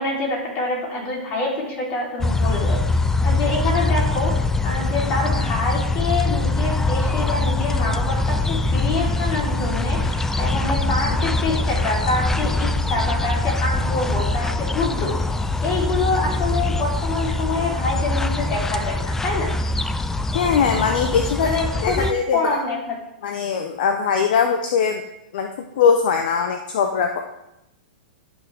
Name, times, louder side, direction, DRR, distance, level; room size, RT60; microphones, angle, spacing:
voice 1, 0.0-2.8 3.2-15.2 15.6-19.5 21.4-22.8, left 3 dB, 40° left, -3 dB, 3.6 m, -26 dB
sound 1, 2.2-22.1, left 2 dB, 5° left, 0.4 m, -23 dB
voice 2, 20.3-21.5 21.8-22.6 23.2-25.0 25.3-25.5 25.8-27.2, left 6 dB, 65° left, 4 dB, 0.8 m, -21 dB
12.0 x 6.1 x 3.6 m, 0.86 s
hypercardioid pair, 125°, 5 cm